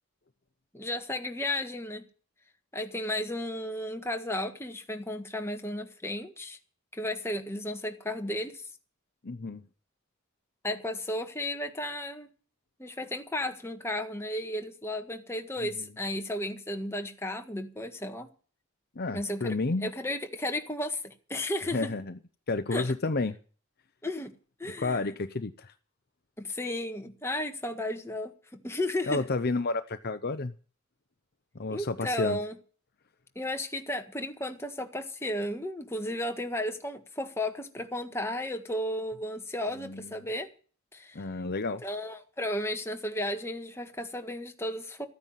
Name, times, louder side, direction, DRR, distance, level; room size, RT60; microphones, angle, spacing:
voice 1, 0.7-2.1 2.7-6.6 6.9-8.6 10.6-12.3 12.8-18.3 19.1-21.9 22.7-23.0 24.0-24.3 24.6-25.0 26.4-29.2 31.7-32.6 33.4-40.5 40.9-41.2 41.8-45.1, left 1 dB, 10° left, 1.6 m, -34 dB
voice 2, 9.2-9.6 15.6-15.8 19.0-19.9 21.7-22.2 22.5-23.4 24.8-25.7 29.1-30.5 31.5-32.4 39.7-40.1 41.1-41.8, left 3 dB, 45° left, 0.7 m, -31 dB
14.0 x 9.7 x 9.1 m
head